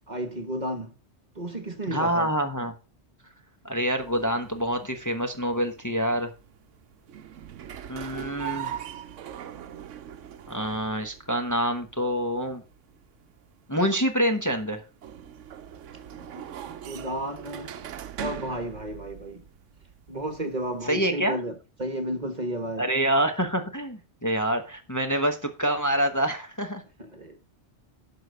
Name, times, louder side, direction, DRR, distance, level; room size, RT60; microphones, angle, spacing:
voice 1, 0.1-0.9 1.3-2.3 16.1-17.7 18.2-19.4 20.1-21.5 21.8-22.9 27.0-27.4, right 1 dB, 40° right, 1.3 m, -33 dB
voice 2, 1.9-2.7 3.6-6.3 7.9-8.8 10.5-12.6 13.7-14.8 20.8-21.4 22.8-26.8, equal, 15° left, 1.1 m, -26 dB
sound 1, 4.0-21.1, right 10 dB, 85° right, 1.1 m, -42 dB
12.0 x 4.9 x 6.3 m
omnidirectional pair, 1.2 m